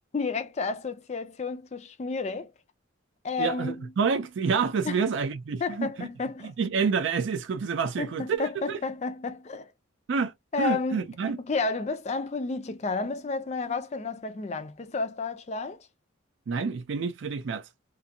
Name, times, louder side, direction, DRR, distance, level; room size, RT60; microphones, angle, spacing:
voice 1, 0.1-2.5 3.2-3.9 4.8-5.0 5.6-6.5 8.0-9.7 10.5-11.1 11.4-15.9, left 4 dB, 35° left, 0.3 m, -31 dB
voice 2, 3.4-6.1 6.6-8.8 10.1-11.4 16.5-17.7, right 5 dB, 65° right, 0.4 m, -28 dB
2.5 x 2.4 x 2.6 m
head